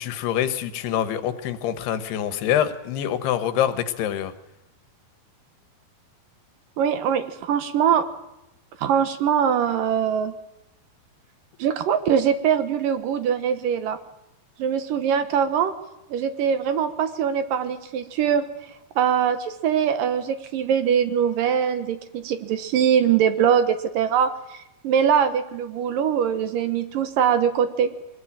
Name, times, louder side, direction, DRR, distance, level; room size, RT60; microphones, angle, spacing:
voice 1, 0.0-4.3, left 10 dB, 90° left, 12 dB, 3.4 m, -25 dB
voice 2, 6.8-8.1 8.8-10.3 11.6-14.0 14.6-15.7 16.1-18.5 19.0-27.9, right 8 dB, 65° right, 10 dB, 2.6 m, -22 dB
23.5 x 19.5 x 8.8 m, 0.90 s
omnidirectional pair, 4.6 m